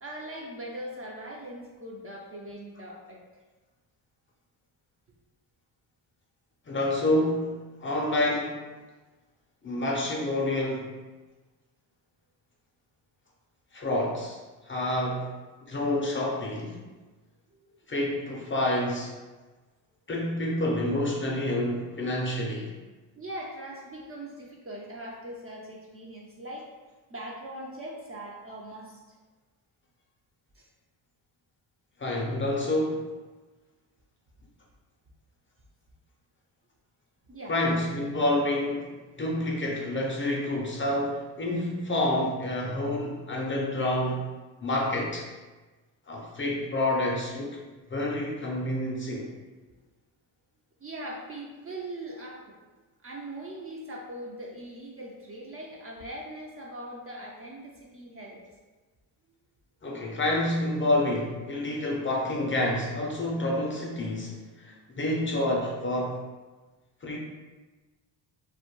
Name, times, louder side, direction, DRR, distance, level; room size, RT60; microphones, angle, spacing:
voice 1, 0.0-3.2 17.5-17.8 23.2-26.7 27.1-29.0 30.6-30.7 37.3-37.8 50.8-52.6 53.0-58.4, right 1 dB, 30° right, -2 dB, 0.4 m, -41 dB
voice 2, 6.7-7.5 7.8-8.6 9.6-10.9 13.7-14.4 14.6-15.3 15.6-16.8 17.9-19.1 20.1-22.7 32.0-33.0 37.5-38.9 39.2-44.2 44.6-45.3 46.1-47.6 47.9-49.3 59.8-66.2 67.0-67.2, left 1 dB, 25° left, -2 dB, 0.5 m, -28 dB
2.2 x 2.2 x 2.9 m, 1.2 s
supercardioid pair, 65°, 47 cm